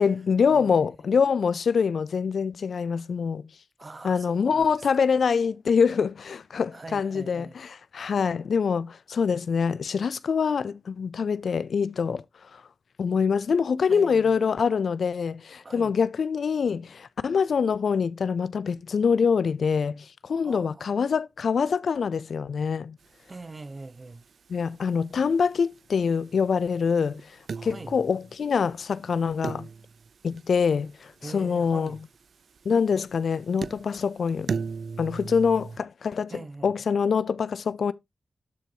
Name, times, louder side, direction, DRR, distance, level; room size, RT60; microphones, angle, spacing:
voice 1, 0.0-3.5 4.0-12.2 12.5-12.6 13.0-23.0 24.5-27.3 27.6-29.7 30.2-32.0 32.7-34.5 35.0-36.3 36.6-37.9, left 6 dB, 80° left, 0.4 m, -25 dB
voice 2, 0.5-0.8 3.8-5.1 6.7-7.6 13.9-14.4 15.6-15.9 20.4-20.9 23.3-24.2 27.5-27.9 31.2-32.0 36.3-36.7, right 3 dB, 35° right, 1.1 m, -43 dB
sound 1, 23.0-35.8, right 5 dB, 80° right, 0.5 m, -40 dB
12.5 x 4.6 x 2.8 m
wide cardioid pair, 80°, 0 cm